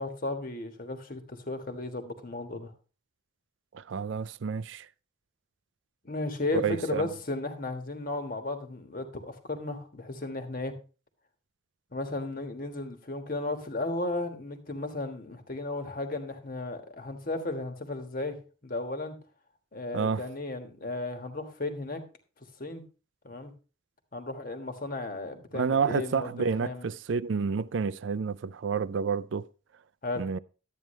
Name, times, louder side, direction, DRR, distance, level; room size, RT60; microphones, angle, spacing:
voice 1, 0.0-2.7 6.0-10.7 11.9-18.4 18.6-19.1 19.7-22.0 22.6-22.8 23.2-23.5 24.1-26.9 30.0-30.2, left 2 dB, 45° left, 1.4 m, -34 dB
voice 2, 3.7-4.9 6.6-7.1 19.9-20.2 25.5-29.5 30.2-30.4, right 5 dB, 70° right, 0.4 m, -29 dB
11.5 x 9.1 x 3.1 m
head